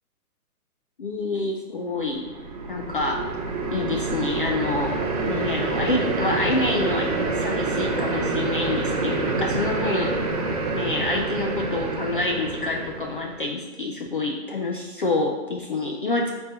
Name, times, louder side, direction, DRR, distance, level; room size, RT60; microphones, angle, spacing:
voice 1, 1.0-2.3 2.7-3.3 3.7-5.0 5.3-16.3, left 2 dB, 40° left, 1 dB, 0.4 m, -27 dB
sound 1, 2.0-13.4, right 3 dB, 25° right, 0.5 m, -27 dB
6.4 x 3.9 x 4.0 m, 1.1 s
hypercardioid pair, 150°, 45 cm